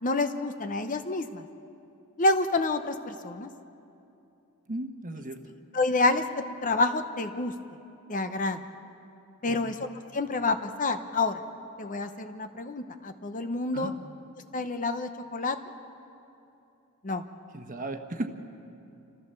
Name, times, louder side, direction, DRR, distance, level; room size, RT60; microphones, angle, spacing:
voice 1, 0.0-1.5 2.2-3.5 5.7-6.2 6.6-7.5 8.1-8.6 9.4-9.8 10.1-11.4 11.8-13.9 14.5-15.6 17.0-17.2, left 2 dB, 35° left, 8 dB, 0.8 m, -28 dB
voice 2, 4.7-5.5 9.4-9.7 13.7-14.0 17.5-18.3, right 1 dB, 35° right, 6 dB, 1.2 m, -36 dB
27.5 x 14.5 x 6.9 m, 2.8 s
head